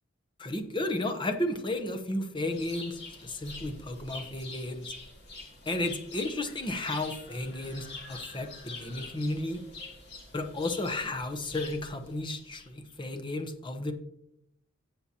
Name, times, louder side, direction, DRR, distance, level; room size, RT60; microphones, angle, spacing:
voice 1, 0.4-4.8 5.7-9.6 10.3-13.9, left 1 dB, 25° left, 7 dB, 0.8 m, -33 dB
sound 1, 2.5-12.9, left 3 dB, 55° left, 2.7 m, -45 dB
16.5 x 5.8 x 2.8 m, 0.77 s
head